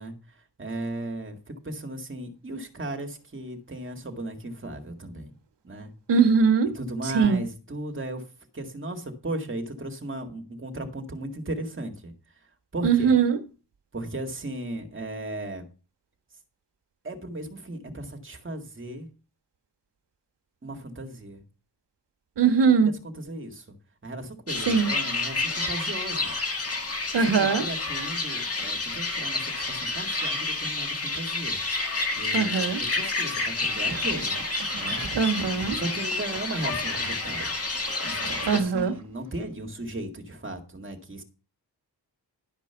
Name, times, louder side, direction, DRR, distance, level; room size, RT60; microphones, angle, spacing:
voice 1, 0.0-1.4 1.6-5.3 5.6-5.9 6.7-8.2 8.5-12.1 12.7-13.2 13.9-15.7 17.0-19.1 20.6-21.4 23.0-23.7 24.0-26.3 27.1-31.6 32.2-34.4 34.8-35.0 35.7-37.6 38.0-41.2, right 1 dB, 30° right, 1.9 m, -36 dB
voice 2, 6.1-6.7 7.1-7.4 12.8-13.4 22.4-22.9 24.7-24.9 27.1-27.6 32.3-32.8 35.1-35.8 38.4-38.9, right 6 dB, 85° right, 1.4 m, -21 dB
sound 1, 24.5-38.6, left 3 dB, 35° left, 1.8 m, -29 dB
sound 2, 33.8-39.3, right 4 dB, 45° right, 1.7 m, -41 dB
12.0 x 5.2 x 6.9 m
wide cardioid pair, 145°, 41 cm